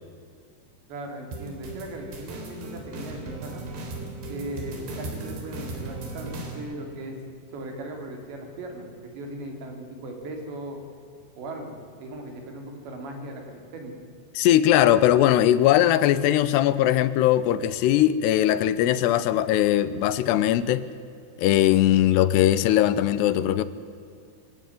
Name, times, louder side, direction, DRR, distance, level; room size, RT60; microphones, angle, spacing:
voice 1, 0.9-3.7 4.3-7.2 7.5-10.8 11.4-14.0, right 1 dB, 90° right, 3 dB, 5.4 m, -38 dB
sound 1, 1.3-6.6, right 2 dB, 70° right, 5.4 m, -37 dB
voice 2, 14.4-20.8 21.4-23.6, left 12 dB, 85° left, 15 dB, 2.9 m, -20 dB
22.5 x 17.0 x 9.4 m, 2.5 s
omnidirectional pair, 4.9 m